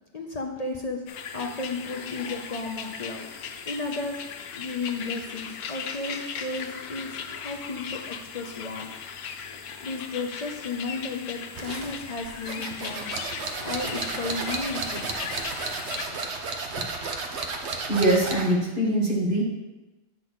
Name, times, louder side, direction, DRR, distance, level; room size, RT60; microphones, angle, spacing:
voice 1, 0.1-1.0 1.3-3.3 3.7-4.2 4.6-8.9 9.7-13.2 13.6-15.1, left 3 dB, 50° left, 1 dB, 0.4 m, -33 dB
sound 1, 1.1-16.1, left 7 dB, 85° left, 1.1 m, -38 dB
sound 2, 11.6-18.6, right 3 dB, 55° right, 1.0 m, -33 dB
voice 2, 17.9-19.4, right 1 dB, 35° right, -3 dB, 1.7 m, -22 dB
8.2 x 3.8 x 6.1 m, 1.1 s
omnidirectional pair, 1.5 m